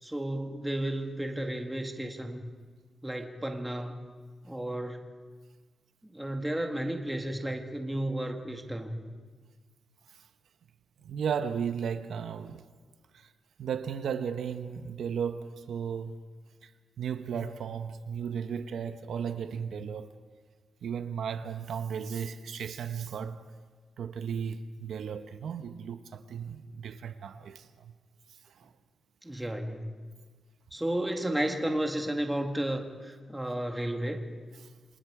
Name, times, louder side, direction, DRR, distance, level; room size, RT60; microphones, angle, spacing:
voice 1, 0.0-2.5 3.0-4.0 4.4-5.0 6.0-9.0 29.2-30.0 30.7-34.3, right 1 dB, 5° right, 1.9 m, -33 dB
voice 2, 11.0-12.6 13.1-13.3 13.6-16.2 16.6-16.7 17.0-20.2 20.8-23.5 24.0-27.9 28.4-28.7, right 7 dB, 80° right, 1.1 m, -35 dB
28.0 x 26.0 x 5.0 m
wide cardioid pair, 170°, 0 cm